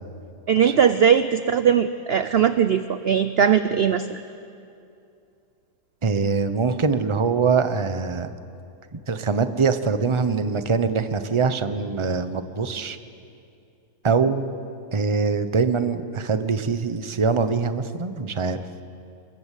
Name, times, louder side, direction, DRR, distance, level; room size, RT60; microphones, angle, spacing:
voice 1, 0.5-4.2, right 8 dB, 55° right, 11 dB, 0.7 m, -19 dB
voice 2, 6.0-8.3 8.9-13.0 14.0-14.5 14.9-18.6, right 5 dB, 25° right, 10 dB, 0.8 m, -23 dB
27.5 x 21.5 x 8.4 m, 2.5 s
omnidirectional pair, 1.7 m